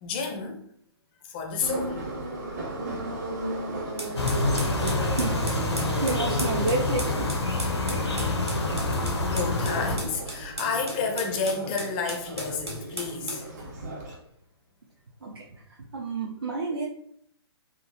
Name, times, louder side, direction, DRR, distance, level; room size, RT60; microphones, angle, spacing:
voice 1, 0.0-0.6 1.3-2.1 5.8-6.0 9.3-13.5, left 5 dB, 20° left, 3 dB, 0.4 m, -30 dB
Subway metro underground, 1.6-14.1, right 2 dB, 40° right, 0.8 m, -35 dB
sound 1, 4.0-13.5, right 1 dB, 80° right, 0.9 m, -37 dB
sound 2, 4.2-10.0, left 3 dB, 80° left, 0.5 m, -27 dB
voice 2, 5.1-7.3 15.2-15.6 15.9-16.8, right 3 dB, 60° right, -2 dB, 0.4 m, -30 dB
2.9 x 2.0 x 2.8 m, 0.71 s
figure-of-eight pair, 125°, 14 cm